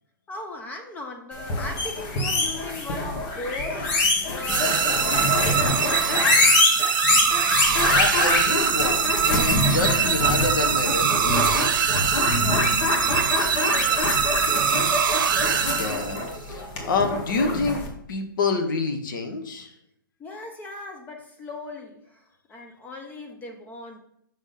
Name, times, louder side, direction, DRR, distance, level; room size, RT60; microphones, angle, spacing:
voice 1, 0.3-6.6 12.4-14.3 20.2-24.1, left 2 dB, 15° left, 3 dB, 0.7 m, -38 dB
sound 1, 1.4-17.9, left 2 dB, 40° left, 1.4 m, -25 dB
sound 2, 4.5-16.4, right 7 dB, 60° right, 0.8 m, -23 dB
voice 2, 7.9-11.7 15.6-17.8 18.1-19.7, left 3 dB, 65° left, 6 dB, 1.1 m, -28 dB
6.0 x 3.7 x 5.2 m, 0.73 s
hypercardioid pair, 130°, 12 cm